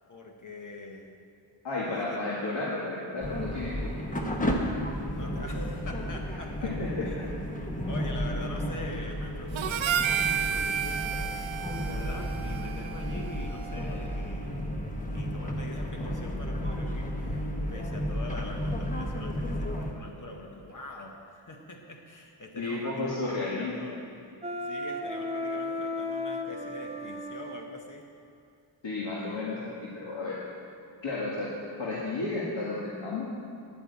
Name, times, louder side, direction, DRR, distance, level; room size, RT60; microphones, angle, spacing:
voice 1, 0.1-1.1 1.9-2.2 5.1-6.7 7.0-7.3 7.9-11.4 11.9-14.8 15.1-23.2 23.6-24.0 24.6-28.1, left 2 dB, 40° left, 2 dB, 1.1 m, -44 dB
voice 2, 1.6-3.9 6.6-7.1 22.6-23.7 28.8-30.4 31.0-31.5 31.8-33.3, left 3 dB, 70° left, -6 dB, 2.1 m, -32 dB
sound 1, 3.2-19.9, equal, 15° left, 1.0 m, -33 dB
Harmonica, 9.6-14.0, right 8 dB, 80° right, 0.6 m, -32 dB
Wind instrument woodwind instrument, 24.4-27.7, left 2 dB, 15° right, 0.6 m, -34 dB
11.0 x 9.0 x 8.3 m, 2.4 s
wide cardioid pair, 170°, 47 cm